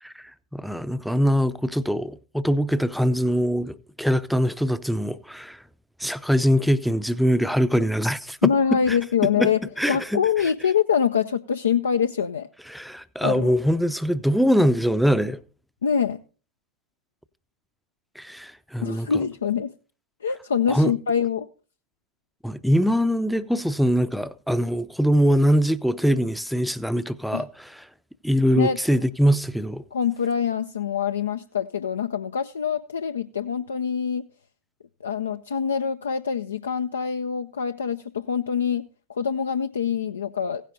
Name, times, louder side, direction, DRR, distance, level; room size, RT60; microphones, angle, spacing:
voice 1, 0.0-5.6 6.0-9.0 9.2-9.5 9.8-10.5 12.7-15.4 18.2-19.2 20.7-20.9 22.4-27.9 28.2-29.8, equal, ahead, 0.5 m, -23 dB
voice 2, 8.4-9.6 9.9-12.5 13.2-13.5 15.8-16.2 18.8-19.7 20.2-21.5 27.3-27.4 28.6-28.8 29.9-34.3 35.0-40.6, left 7 dB, 70° left, 0.4 m, -25 dB
16.0 x 10.0 x 2.7 m
figure-of-eight pair, 90°, 0 cm